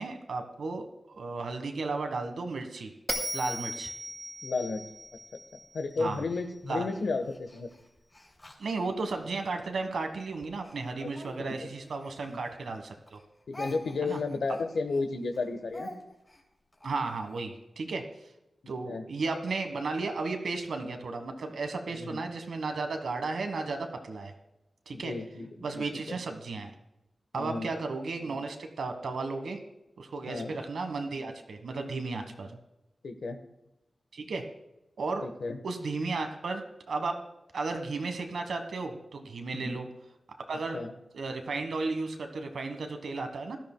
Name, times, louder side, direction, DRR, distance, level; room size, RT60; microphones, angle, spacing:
voice 1, 0.0-2.9 3.3-3.9 6.0-6.2 6.7-6.9 8.6-13.2 14.0-14.2 16.8-18.0 18.7-24.3 24.9-25.1 25.6-26.7 27.3-29.6 30.0-32.5 34.1-34.4 35.0-35.3 35.6-36.6 36.9-37.2 37.5-39.9 40.4-40.8 41.1-43.6, right 3 dB, 85° right, 6 dB, 1.4 m, -34 dB
Bell, 3.1-6.3, equal, 10° right, 2.3 m, -37 dB
voice 2, 4.4-4.9 5.5-7.7 11.0-11.1 11.4-11.7 12.2-12.4 13.5-15.9 18.8-19.1 21.9-22.2 24.9-26.2 27.3-27.7 30.3-30.5 32.4-32.5 33.0-33.4 35.2-35.6 39.5-39.9 40.7-40.9, left 3 dB, 85° left, 7 dB, 1.1 m, -33 dB
Speech, 6.3-9.4 10.0-12.8 13.1-17.5, left 1 dB, 20° left, 3.6 m, -48 dB
16.5 x 12.5 x 2.2 m, 0.92 s
wide cardioid pair, 90°, 0 cm